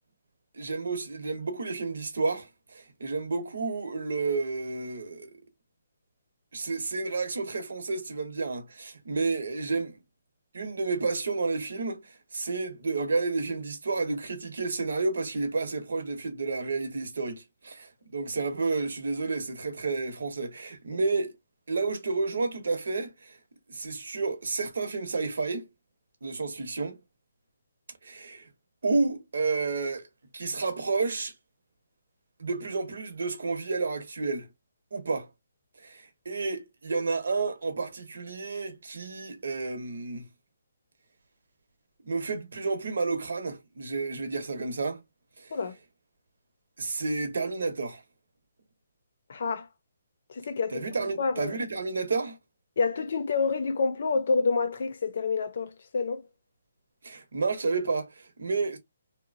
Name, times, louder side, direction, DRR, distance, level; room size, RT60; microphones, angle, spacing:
voice 1, 0.5-5.4 6.5-10.0 10.5-21.3 21.7-23.4 23.7-25.7 26.2-27.0 28.0-28.5 28.8-30.1 30.3-31.3 32.4-34.5 34.9-35.3 35.8-40.3 42.0-45.0 45.4-45.5 46.8-48.0 50.7-52.4 57.0-58.8, right 3 dB, 70° right, 0.9 m, -31 dB
voice 2, 49.3-49.7 50.3-50.9 51.2-51.6 52.8-56.2, left 4 dB, 50° left, 0.6 m, -28 dB
2.9 x 2.1 x 2.5 m
hypercardioid pair, 170°, 0 cm